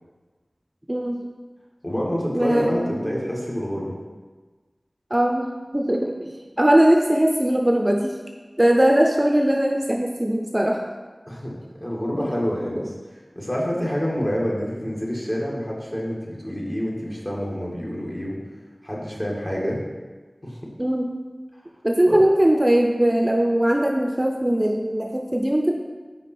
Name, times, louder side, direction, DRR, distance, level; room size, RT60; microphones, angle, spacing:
voice 1, 0.9-1.2 2.3-3.1 5.1-5.5 5.7-6.3 6.6-8.2 8.6-10.9 12.2-12.3 14.2-14.3 20.8-21.1 21.8-25.7, right 1 dB, 25° right, 2 dB, 0.5 m, -20 dB
voice 2, 1.8-4.0 11.3-12.9 13.3-18.4 18.8-19.8 20.4-20.7 22.1-22.2, equal, 30° left, -4 dB, 1.6 m, -27 dB
5.0 x 5.0 x 4.2 m, 1.3 s
wide cardioid pair, 40°, 0 cm